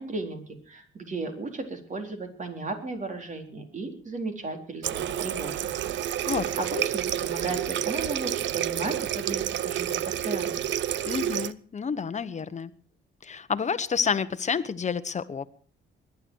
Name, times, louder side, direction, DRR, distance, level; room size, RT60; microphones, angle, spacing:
voice 1, 0.0-5.7 6.3-10.6, right 3 dB, 40° right, 4 dB, 4.2 m, -35 dB
Water tap faucet, 4.8-11.5, right 11 dB, 65° right, 0.6 m, -29 dB
voice 2, 11.0-12.7 13.2-15.5, left 6 dB, 35° left, 13 dB, 1.2 m, -29 dB
21.5 x 11.0 x 4.7 m, 0.42 s
cardioid pair, 90°, 20 cm